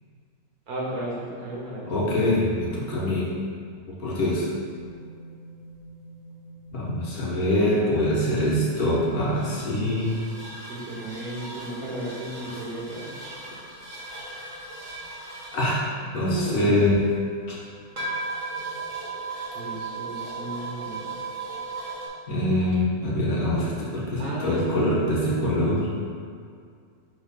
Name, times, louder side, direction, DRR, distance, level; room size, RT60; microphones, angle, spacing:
voice 1, 0.7-2.0 10.7-13.4 16.2-16.9 19.5-21.1 24.2-25.6, right 1 dB, 65° right, -5 dB, 1.8 m, -34 dB
voice 2, 1.9-3.3 3.9-4.4 6.7-10.2 15.5-15.9 16.1-17.0 22.3-25.9, left 1 dB, 70° left, -6 dB, 1.7 m, -24 dB
sound 1, 4.3-22.1, right 3 dB, 30° right, 1.4 m, -38 dB
4.5 x 3.9 x 5.3 m, 2.2 s
omnidirectional pair, 1.7 m